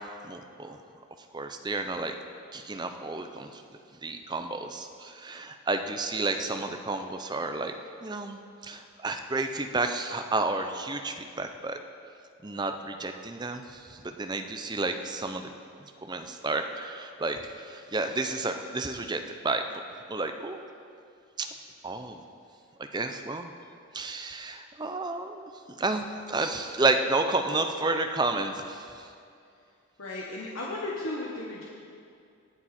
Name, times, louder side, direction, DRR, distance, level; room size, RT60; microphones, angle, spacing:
voice 1, 0.2-0.8 1.3-2.1 2.5-3.6 4.0-7.7 8.0-8.4 8.6-11.8 12.4-15.5 16.1-19.6 20.1-20.6 21.4-21.5 21.8-22.2 22.9-23.5 23.9-25.5 25.8-29.1, right 3 dB, 20° right, 6 dB, 0.6 m, -31 dB
voice 2, 30.0-31.6, left 2 dB, 75° left, -4 dB, 1.4 m, -35 dB
20.0 x 7.3 x 4.3 m, 2.4 s
head